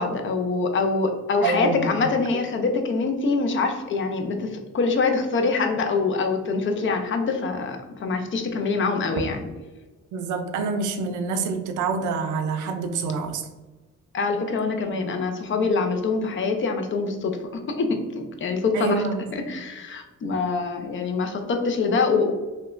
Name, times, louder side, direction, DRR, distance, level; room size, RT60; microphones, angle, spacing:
voice 1, 0.0-9.4 14.1-19.0 19.3-22.3, left 4 dB, 40° left, 5 dB, 0.4 m, -25 dB
voice 2, 1.4-2.1 10.1-13.5 18.7-19.5, right 4 dB, 75° right, 6 dB, 0.5 m, -27 dB
2.8 x 2.2 x 2.4 m, 1.2 s
cardioid pair, 90°, 30 cm